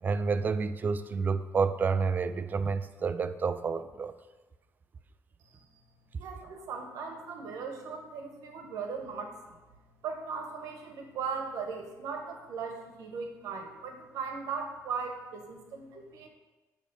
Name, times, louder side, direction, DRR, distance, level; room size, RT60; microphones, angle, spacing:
voice 1, 0.0-4.1, right 5 dB, 30° right, 12 dB, 0.3 m, -29 dB
voice 2, 6.2-9.5 10.0-16.3, right 5 dB, 80° right, 4 dB, 1.1 m, -38 dB
8.6 x 3.1 x 5.3 m, 1.2 s
cardioid pair, 135°, 6 cm